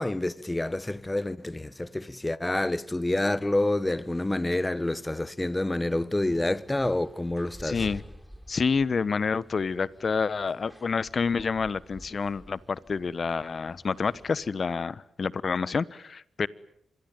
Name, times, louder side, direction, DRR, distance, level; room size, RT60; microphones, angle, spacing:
voice 1, 0.0-7.8, left 1 dB, 20° left, 1.2 m, -28 dB
sound 1, 6.3-14.5, equal, ahead, 3.7 m, -49 dB
voice 2, 7.6-8.0 8.5-16.5, left 5 dB, 50° left, 1.1 m, -28 dB
26.0 x 22.0 x 9.2 m
supercardioid pair, 45°, 0 cm